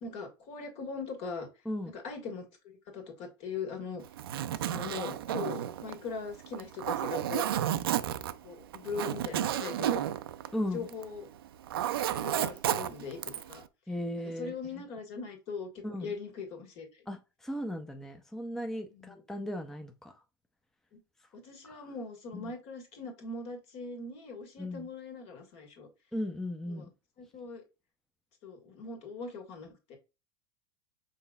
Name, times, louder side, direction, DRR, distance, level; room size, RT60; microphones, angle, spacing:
voice 1, 0.0-1.5 1.9-4.0 4.5-7.5 8.4-10.1 10.7-11.3 12.1-13.6 14.4-15.7 16.0-17.0 18.9-19.2 20.9-21.0 21.3-25.9 26.7-26.9 27.2-27.6 28.4-30.0, left 4 dB, 50° left, 1.7 m, -40 dB
Zipper (clothing), 4.0-11.2 11.4-13.6, right 11 dB, 70° right, 0.4 m, -32 dB
voice 2, 10.5-10.9 13.9-14.5 15.8-16.1 17.1-20.2 21.6-21.9 22.3-22.5 24.6-24.9 26.1-26.9, left 1 dB, 5° left, 0.6 m, -37 dB
5.4 x 3.8 x 2.3 m
hypercardioid pair, 85°, 13 cm